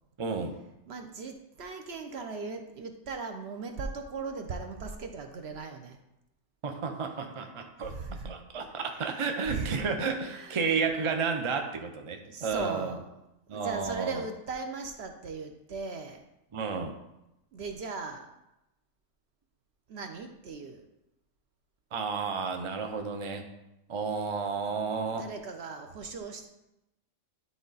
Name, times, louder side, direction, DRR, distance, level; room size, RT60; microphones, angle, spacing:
voice 1, 0.2-0.6 6.6-7.9 8.2-12.9 13.5-14.2 16.5-16.9 21.9-23.5 23.9-25.3, right 5 dB, 40° right, 5 dB, 0.4 m, -32 dB
voice 2, 0.9-6.0 7.8-8.3 9.5-9.9 10.2-10.7 12.3-13.1 13.5-16.3 17.5-18.4 19.9-20.8 25.1-26.5, right 4 dB, 55° right, 5 dB, 0.8 m, -38 dB
10.0 x 3.7 x 4.0 m, 0.89 s
omnidirectional pair, 1.5 m